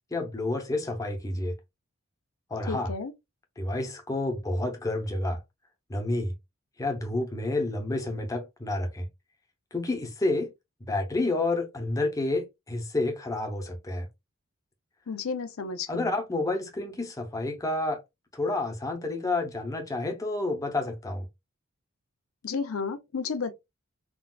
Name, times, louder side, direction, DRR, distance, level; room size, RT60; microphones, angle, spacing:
voice 1, 0.1-1.6 2.5-2.9 3.6-5.4 5.9-6.3 6.8-9.1 9.7-10.5 10.9-14.1 15.9-18.0 18.3-21.3, left 2 dB, 15° left, 0.6 m, -29 dB
voice 2, 2.7-3.1 15.1-16.1 22.4-23.5, left 5 dB, 80° left, 0.5 m, -32 dB
3.6 x 2.3 x 2.2 m
head